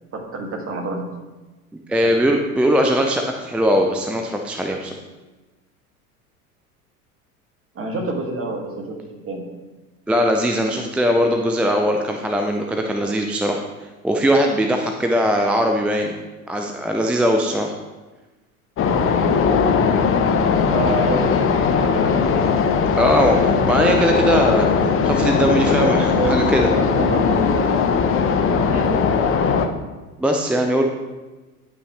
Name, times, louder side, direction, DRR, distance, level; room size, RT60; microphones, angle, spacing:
voice 1, 0.1-1.1 2.0-2.1 7.7-9.4 20.7-22.6 25.7-27.9 28.7-28.9, right 2 dB, 30° right, 0 dB, 2.1 m, -27 dB
voice 2, 1.9-4.9 10.1-13.6 14.0-16.1 16.5-17.7 22.9-24.7 25.0-26.7 30.2-30.8, equal, 5° right, 3 dB, 0.3 m, -20 dB
sound 1, 18.8-29.7, left 5 dB, 30° left, 0.8 m, -19 dB
11.0 x 5.8 x 3.2 m, 1.2 s
hypercardioid pair, 80°, 45 cm